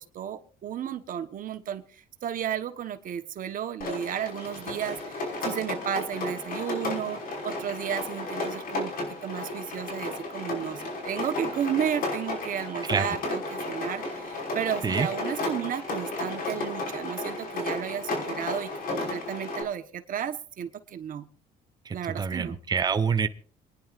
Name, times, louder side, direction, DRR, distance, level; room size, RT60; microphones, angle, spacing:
voice 1, 0.2-1.8 2.2-4.9 5.4-7.2 7.4-8.9 9.2-10.8 11.1-13.4 13.7-14.0 14.5-19.8 20.1-21.2 21.9-22.5, right 9 dB, 55° right, 8 dB, 1.2 m, -32 dB
Rain, 3.8-19.6, left 2 dB, 60° left, 5.5 m, -33 dB
voice 2, 21.9-23.3, right 6 dB, 25° right, 8 dB, 0.9 m, -26 dB
27.5 x 10.5 x 2.5 m, 0.43 s
cardioid pair, 110°, 17 cm